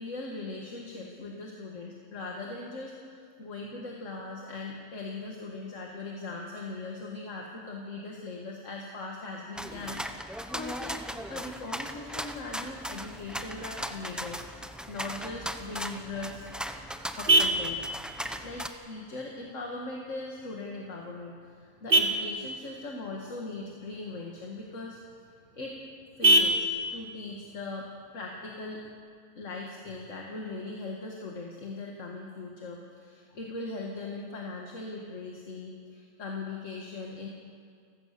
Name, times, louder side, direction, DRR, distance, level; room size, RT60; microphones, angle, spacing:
voice 1, 0.0-11.0 11.3-16.4 17.2-17.8 18.2-25.0 25.5-25.8 26.2-28.8 29.4-37.3, left 3 dB, 70° left, 0 dB, 2.2 m, -40 dB
sound 1, 9.5-18.7, equal, ahead, 0.8 m, -38 dB
Vehicle horn car horn honking, 16.0-29.0, right 2 dB, 45° right, 1.8 m, -31 dB
30.0 x 15.5 x 6.8 m, 2.1 s
omnidirectional pair, 1.3 m